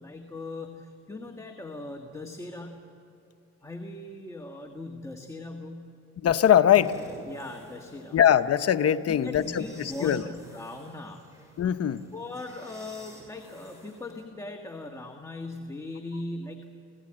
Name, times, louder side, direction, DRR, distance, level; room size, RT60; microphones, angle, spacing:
voice 1, 0.0-2.9 3.6-5.9 6.7-6.8 7.3-8.2 9.1-11.3 12.1-16.8, left 2 dB, 10° left, 2 dB, 1.6 m, -39 dB
voice 2, 6.2-6.9 8.1-10.2 11.6-12.0, left 10 dB, 55° left, 10 dB, 0.9 m, -22 dB
sound 1, 6.6-14.2, equal, 10° right, 7.1 m, -51 dB
27.0 x 16.5 x 8.8 m, 2.8 s
cardioid pair, 90°, 30 cm